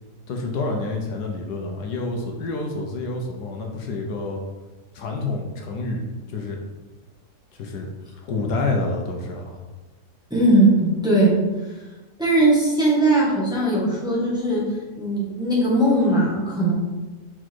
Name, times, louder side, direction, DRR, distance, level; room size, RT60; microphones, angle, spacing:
voice 1, 0.3-4.4 4.9-6.0 6.3-6.6 7.5-7.9 8.2-9.6, left 3 dB, 75° left, 2 dB, 1.4 m, -28 dB
voice 2, 10.3-11.4 12.2-16.7, right 1 dB, 5° right, -6 dB, 1.5 m, -19 dB
5.8 x 4.5 x 4.6 m, 1.2 s
omnidirectional pair, 1.8 m